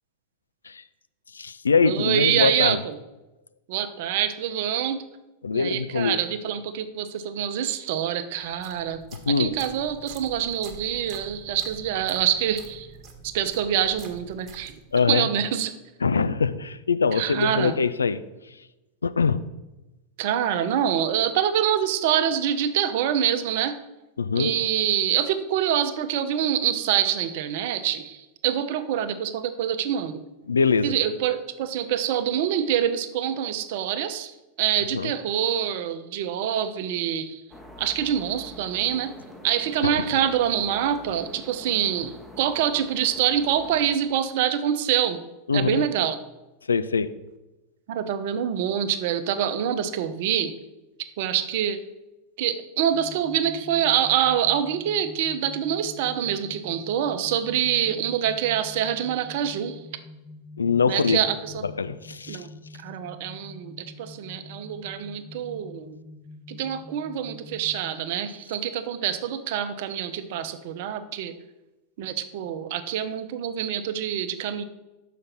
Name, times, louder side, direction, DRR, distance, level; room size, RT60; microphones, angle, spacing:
voice 1, 1.3-2.8 5.4-6.2 9.1-9.5 14.9-15.3 16.0-18.2 19.0-19.4 24.2-24.5 30.5-31.0 34.9-35.1 39.8-40.1 45.5-45.9 46.7-47.1 60.6-61.2 61.8-62.5, left 5 dB, 75° left, 13 dB, 0.3 m, -23 dB
voice 2, 1.8-3.0 3.7-5.0 5.5-12.9 13.2-14.8 15.1-15.7 17.1-17.7 20.2-23.7 24.3-30.2 30.8-37.4 37.8-39.1 39.4-45.2 45.5-46.2 47.9-50.5 51.2-51.8 52.4-59.8 60.9-61.6 62.3-62.5 62.8-65.9 66.5-71.3 72.0-74.6, right 10 dB, 50° right, 10 dB, 0.6 m, -25 dB
sound 1, 8.4-15.1, right 5 dB, 30° right, 1.2 m, -46 dB
sound 2, 37.5-44.0, left 1 dB, 5° left, 0.8 m, -45 dB
sound 3, 52.9-67.9, left 2 dB, 30° left, 1.1 m, -46 dB
6.5 x 5.0 x 5.8 m, 1.0 s
figure-of-eight pair, 90°, 0 cm